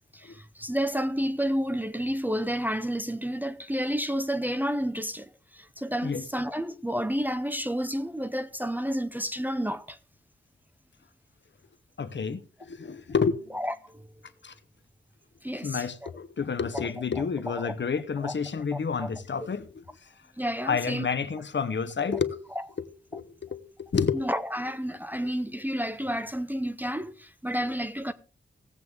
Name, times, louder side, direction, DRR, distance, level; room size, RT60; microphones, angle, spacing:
voice 1, 0.1-10.0 13.5-14.1 15.4-16.1 16.7-16.8 17.2-17.7 18.2-18.3 18.7-19.1 20.4-21.1 22.1-22.2 24.1-28.1, equal, 10° right, 0.6 m, -31 dB
voice 2, 12.0-13.4 14.4-14.5 15.5-19.8 20.6-22.4 22.8-24.3, left 5 dB, 60° left, 0.9 m, -30 dB
17.5 x 8.0 x 3.5 m
wide cardioid pair, 115°, 21 cm